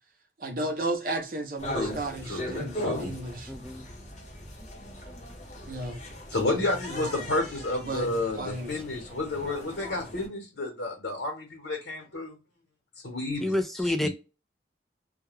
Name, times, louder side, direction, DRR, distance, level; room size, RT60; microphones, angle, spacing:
voice 1, 0.4-3.5 5.7-6.0 6.4-7.3 7.8-8.7, right 2 dB, 50° right, 0.6 m, -34 dB
sound 1, 1.6-10.3, equal, 40° left, 0.7 m, -39 dB
voice 2, 2.3-3.2 6.3-12.4 13.0-14.1, left 2 dB, 85° left, 1.0 m, -31 dB
voice 3, 3.5-3.9 13.4-14.1, left 1 dB, ahead, 0.3 m, -28 dB
2.3 x 2.1 x 3.1 m
head